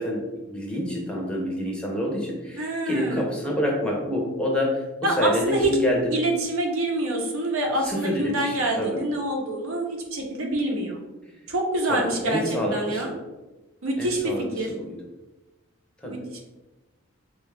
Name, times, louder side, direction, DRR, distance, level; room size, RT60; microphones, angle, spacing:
voice 1, 0.0-6.1 7.8-9.0 11.9-13.2 14.0-15.0 16.0-16.2, equal, 5° left, -2 dB, 0.6 m, -27 dB
voice 2, 2.6-3.2 5.0-5.7 6.1-11.0 11.5-12.4 12.7-13.1 13.8-14.2 14.6-14.7 16.1-16.2, right 1 dB, 75° right, 1 dB, 0.7 m, -26 dB
3.7 x 2.3 x 3.3 m, 1.1 s
head